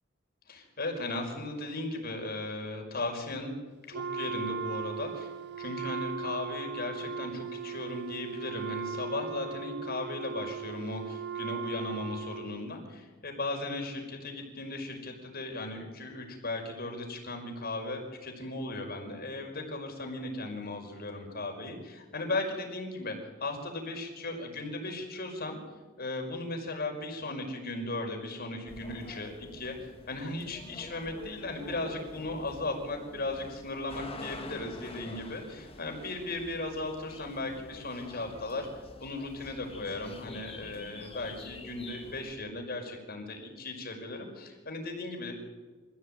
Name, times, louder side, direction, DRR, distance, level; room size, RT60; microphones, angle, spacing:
voice 1, 0.5-3.5 3.9-5.3 5.6-25.6 26.0-45.3, left 2 dB, 50° left, 3 dB, 5.5 m, -37 dB
Wind instrument woodwind instrument, 3.9-12.7, right 5 dB, 60° right, 0.9 m, -38 dB
sound 1, 28.7-42.4, left 2 dB, 30° left, 2.7 m, -47 dB
26.0 x 16.5 x 9.0 m, 1.3 s
head